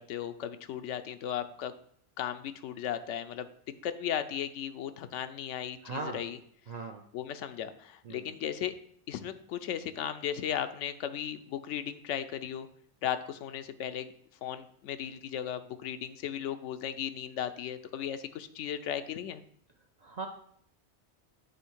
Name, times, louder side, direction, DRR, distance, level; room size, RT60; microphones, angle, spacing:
voice 1, 0.0-1.7 2.2-3.5 3.8-6.4 7.1-8.7 9.1-12.7 13.0-14.1 14.4-19.4, left 9 dB, 90° left, 10 dB, 0.9 m, -36 dB
voice 2, 5.8-6.2 6.7-7.1 8.0-8.3 20.0-20.3, right 3 dB, 60° right, 4 dB, 0.4 m, -38 dB
8.2 x 3.5 x 4.4 m, 0.64 s
omnidirectional pair, 1.2 m